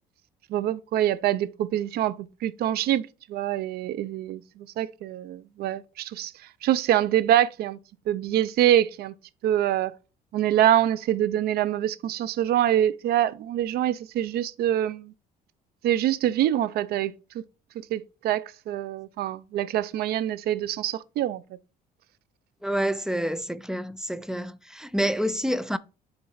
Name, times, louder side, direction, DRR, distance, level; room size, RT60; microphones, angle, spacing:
voice 1, 0.5-2.2 2.4-3.0 3.3-6.3 6.6-7.8 8.1-9.1 9.4-9.9 10.3-15.1 15.8-17.4 17.9-21.4, right 12 dB, 65° right, 0.5 m, -25 dB
voice 2, 22.6-25.8, equal, 5° right, 0.4 m, -28 dB
7.2 x 3.8 x 4.7 m
cardioid pair, 110°, 17 cm